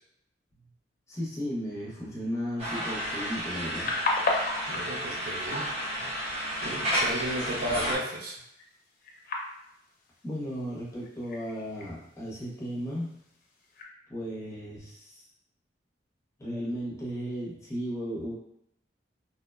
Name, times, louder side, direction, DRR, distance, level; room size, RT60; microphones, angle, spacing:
voice 1, 1.1-4.0 10.2-13.1 14.1-15.2 16.4-18.3, equal, 15° left, -6 dB, 0.7 m, -35 dB
sound 1, 2.6-8.0, equal, 35° right, 0.9 m, -32 dB
sound 2, 3.5-13.8, left 2 dB, 55° left, 0.5 m, -37 dB
voice 2, 4.7-5.7 6.6-8.4, right 1 dB, 60° right, -2 dB, 0.5 m, -34 dB
2.8 x 2.1 x 2.2 m, 0.77 s
head